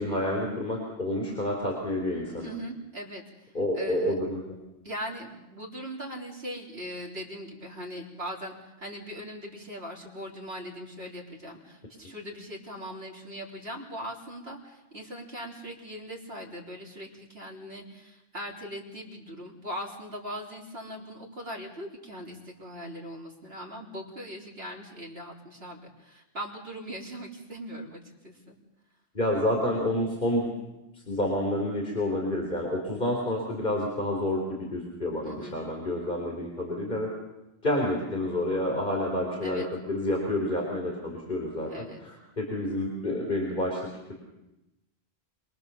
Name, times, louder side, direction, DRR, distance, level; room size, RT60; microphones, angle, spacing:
voice 1, 0.0-2.5 3.5-4.4 29.1-30.5 30.9-37.1 37.6-41.7 42.0-43.8, left 1 dB, 50° left, 0 dB, 4.1 m, -29 dB
voice 2, 2.4-4.2 4.8-28.6 35.2-35.6 39.4-39.7 41.7-42.0, equal, 75° right, -1 dB, 3.9 m, -40 dB
27.0 x 22.5 x 7.0 m, 0.95 s
omnidirectional pair, 1.1 m